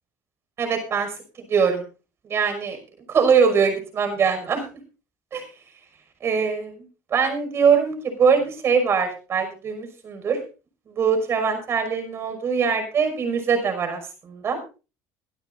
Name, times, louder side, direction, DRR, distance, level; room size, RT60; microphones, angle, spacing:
voice 1, 0.6-1.1 1.5-1.8 2.2-2.8 3.1-4.6 5.3-5.5 6.2-6.8 7.1-10.4 10.9-14.6, right 6 dB, 40° right, 6 dB, 5.8 m, -22 dB
23.0 x 12.5 x 2.6 m, 0.33 s
supercardioid pair, 105°, 7 cm